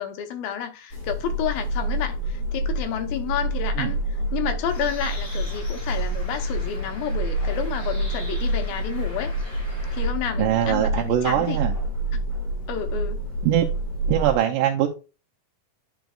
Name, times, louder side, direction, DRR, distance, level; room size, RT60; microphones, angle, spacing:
voice 1, 0.0-4.0 4.3-9.3 9.9-11.6 12.7-13.2, left 9 dB, 85° left, 2.6 m, -30 dB
sound 1, 0.9-14.4, right 1 dB, 45° left, 3.5 m, -28 dB
Bird, 4.7-10.1, right 1 dB, 30° left, 2.3 m, -40 dB
voice 2, 10.4-11.7 13.4-13.7 14.1-14.9, right 11 dB, 80° right, 2.2 m, -22 dB
10.5 x 5.1 x 2.3 m
omnidirectional pair, 4.1 m